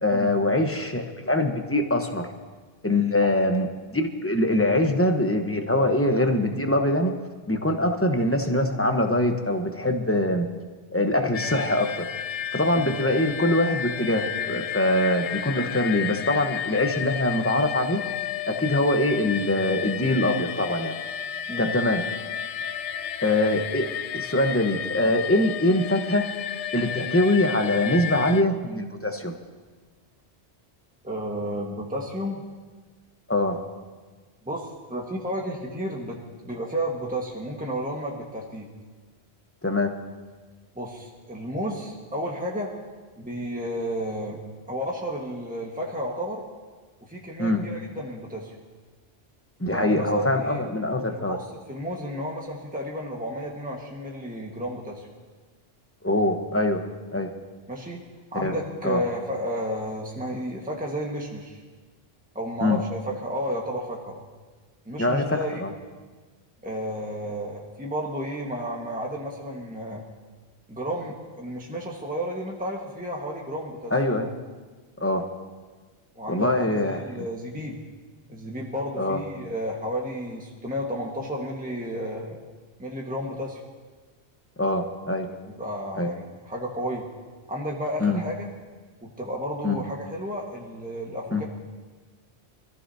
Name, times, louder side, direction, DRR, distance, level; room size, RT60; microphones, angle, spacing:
voice 1, 0.0-2.3 2.8-7.1 7.5-10.5 10.9-12.0 12.5-18.0 18.5-21.0 21.6-22.0 23.2-23.9 24.1-26.2 26.7-29.4 33.3-33.6 39.6-39.9 47.4-47.6 49.6-51.4 56.0-56.8 57.1-57.3 58.3-58.6 58.8-59.0 62.6-62.8 65.0-65.7 73.9-74.3 75.0-75.2 76.3-77.2 79.0-79.2 84.6-85.3 86.0-86.1 88.0-88.2 89.6-89.8 91.3-91.4, left 1 dB, 15° left, 4 dB, 1.0 m, -23 dB
sound 1, 11.3-28.4, left 9 dB, 90° left, 0.9 m, -32 dB
voice 2, 31.0-32.4 34.4-38.7 40.7-42.7 43.2-44.4 44.7-46.5 47.0-48.5 49.7-50.6 51.1-55.1 57.7-58.0 58.3-61.6 62.3-64.2 64.8-65.6 66.6-70.0 70.7-73.9 76.1-77.8 78.3-82.4 82.8-83.6 85.5-87.1 87.5-88.5 89.0-91.4, equal, 10° right, -1 dB, 1.5 m, -32 dB
25.0 x 14.5 x 2.8 m, 1.4 s
omnidirectional pair, 1.1 m